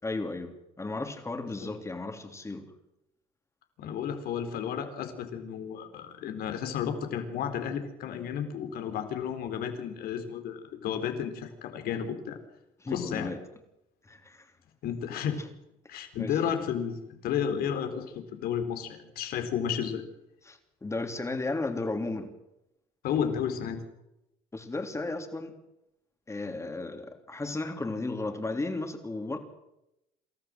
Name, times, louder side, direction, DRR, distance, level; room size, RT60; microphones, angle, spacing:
voice 1, 0.0-2.7 12.8-13.4 14.0-14.5 16.2-16.3 20.5-22.3 24.5-25.5 26.3-29.4, left 2 dB, 15° left, 3.5 m, -34 dB
voice 2, 3.8-12.4 12.9-13.3 14.8-15.4 15.9-20.0 23.0-23.8, left 8 dB, 70° left, 4.0 m, -32 dB
28.0 x 14.0 x 7.7 m
cardioid pair, 95°, 16 cm